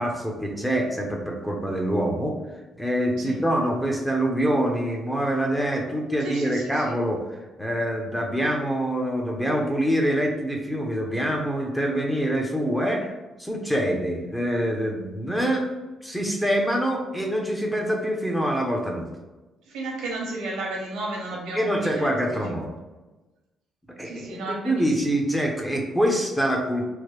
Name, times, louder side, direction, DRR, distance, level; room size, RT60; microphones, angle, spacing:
voice 1, 0.0-2.4 2.8-7.2 7.6-13.1 13.4-15.7 16.0-19.0 21.5-22.7 24.0-26.9, equal, 5° left, 1 dB, 0.6 m, -25 dB
voice 2, 6.2-7.0 19.7-22.6 24.0-24.9, right 2 dB, 90° right, -1 dB, 0.8 m, -34 dB
3.2 x 2.1 x 3.0 m, 1.1 s
cardioid pair, 90°, 0 cm